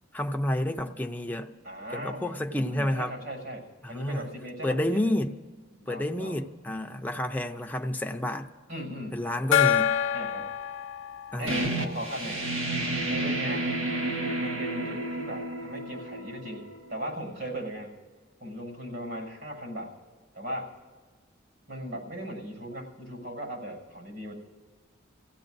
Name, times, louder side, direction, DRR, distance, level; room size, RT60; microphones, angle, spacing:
voice 1, 0.1-1.5 1.9-3.1 3.8-4.3 4.6-5.3 5.9-8.5 9.1-9.9 11.3-11.7, left 1 dB, 10° left, 4 dB, 0.5 m, -30 dB
voice 2, 1.6-2.4 2.7-5.1 5.9-6.4 8.7-9.2 10.1-10.5 11.4-12.4 13.1-13.7 14.4-16.6 16.9-17.9 18.4-19.9 20.3-20.7 21.7-24.3, equal, 65° right, -1 dB, 6.3 m, -38 dB
Gong, 9.5-12.8, left 9 dB, 75° left, 0.5 m, -27 dB
sound 1, 11.5-16.9, right 1 dB, 90° right, 1.3 m, -31 dB
29.0 x 16.0 x 2.6 m, 1.4 s
head